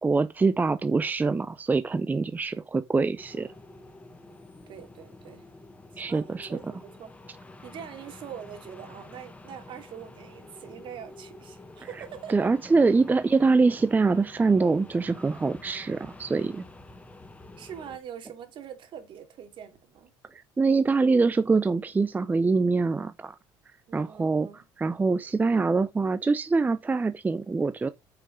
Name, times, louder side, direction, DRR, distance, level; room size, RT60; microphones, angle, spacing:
voice 1, 0.0-3.5 6.0-6.5 12.3-16.6 20.6-23.4 23.9-27.9, right 4 dB, 15° right, 0.5 m, -24 dB
sound 1, 3.2-18.0, left 2 dB, 15° left, 1.5 m, -48 dB
voice 2, 4.7-5.5 5.9-7.1 7.6-12.5 17.6-20.1 23.9-24.7, right 9 dB, 55° right, 2.6 m, -43 dB
8.4 x 5.8 x 5.2 m
cardioid pair, 105°, 10 cm